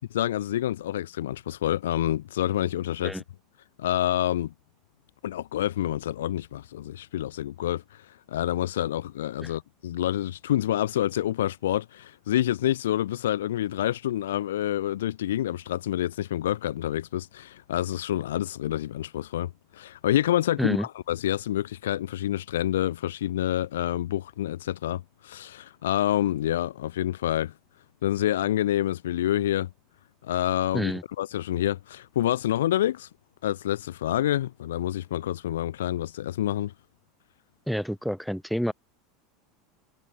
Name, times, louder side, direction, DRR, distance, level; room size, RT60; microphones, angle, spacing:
voice 1, 0.1-3.2 3.8-4.5 5.2-27.5 28.0-29.7 30.2-33.1 33.4-36.7, left 12 dB, 70° left, 0.3 m, -27 dB
voice 2, 37.7-38.7, equal, ahead, 0.9 m, -28 dB
figure-of-eight pair, 80°, 0 cm